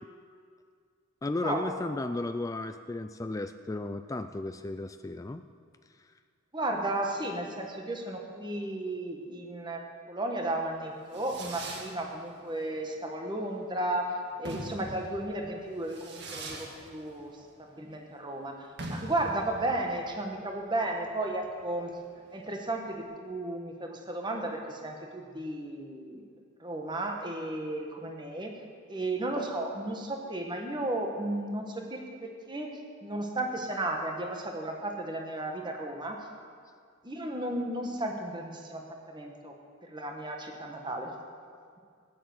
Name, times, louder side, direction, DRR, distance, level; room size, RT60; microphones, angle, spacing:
voice 1, 1.2-5.4, left 2 dB, 15° left, 8 dB, 0.3 m, -34 dB
voice 2, 6.5-17.3 17.6-18.6 18.9-21.9 22.3-26.2 26.6-28.5 28.9-36.2 37.0-38.8 39.1-39.5 39.9-41.1, right 1 dB, 20° right, 2 dB, 1.4 m, -34 dB
Fireworks, 10.8-23.0, right 2 dB, 55° right, 1.9 m, -44 dB
16.0 x 9.6 x 7.8 m, 2.1 s
head